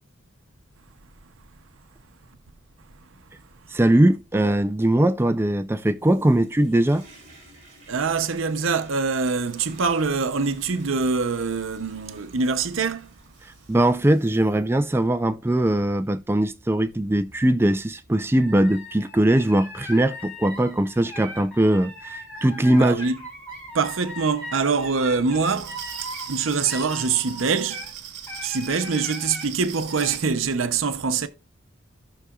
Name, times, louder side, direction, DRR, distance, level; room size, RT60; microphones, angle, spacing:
voice 1, 3.7-7.1 13.7-23.0, right 1 dB, 10° right, 0.4 m, -20 dB
Toilet flush, 6.0-18.4 18.9-19.0, right 2 dB, 35° right, 4.4 m, -52 dB
voice 2, 7.9-13.1 22.7-23.2 23.7-27.9 28.4-31.3, right 5 dB, 85° right, 0.7 m, -24 dB
sound 1, 18.3-27.9 28.3-29.5 29.9-30.2, left 1 dB, 10° left, 4.2 m, -39 dB
Glass, 25.3-30.3, right 9 dB, 55° right, 1.4 m, -39 dB
16.5 x 6.1 x 2.4 m
head